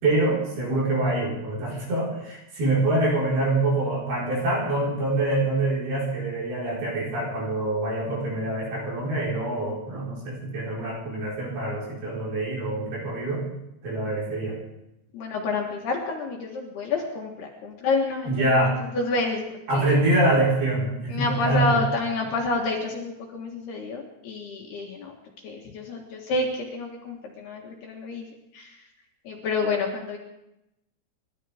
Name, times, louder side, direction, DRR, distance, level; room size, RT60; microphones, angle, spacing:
voice 1, 0.0-13.4 13.8-14.6 18.3-18.8 19.7-21.8, right 2 dB, 50° right, -5 dB, 6.2 m, -25 dB
voice 2, 15.1-18.4 18.9-19.4 19.7-20.0 21.1-25.2 25.4-28.3 28.5-28.8 29.2-30.2, left 3 dB, 60° left, 0 dB, 3.2 m, -28 dB
29.5 x 13.0 x 3.5 m, 0.86 s
omnidirectional pair, 5.8 m